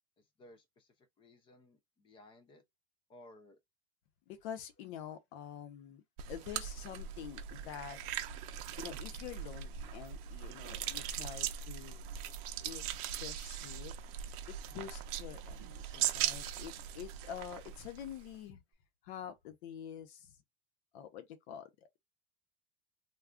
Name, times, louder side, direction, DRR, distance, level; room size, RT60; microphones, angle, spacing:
voice 1, 0.4-2.6 3.1-3.6, left 1 dB, 15° left, 0.3 m, -59 dB
voice 2, 4.3-6.0 6.3-8.0 8.8-12.0 12.6-12.8 13.2-13.9 14.5-18.6 19.0-20.3 20.9-21.7, left 9 dB, 60° left, 0.8 m, -47 dB
sound 1, 6.2-18.4, right 10 dB, 55° right, 0.6 m, -40 dB
2.3 x 2.3 x 3.5 m
supercardioid pair, 155°, 36 cm